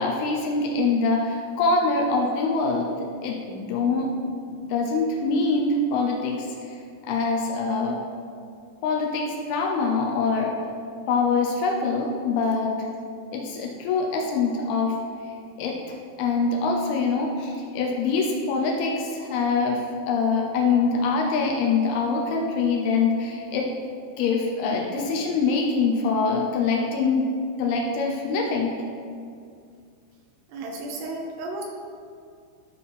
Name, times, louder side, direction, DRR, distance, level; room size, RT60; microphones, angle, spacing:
voice 1, 0.0-4.1 4.5-6.8 7.1-8.0 8.8-10.5 11.1-12.9 13.3-15.0 15.6-23.7 24.2-27.3 27.6-28.7, left 4 dB, 85° left, -1 dB, 2.2 m, -24 dB
voice 2, 30.5-31.6, right 2 dB, 80° right, 1 dB, 2.4 m, -33 dB
12.5 x 4.3 x 5.3 m, 2.3 s
omnidirectional pair, 5.6 m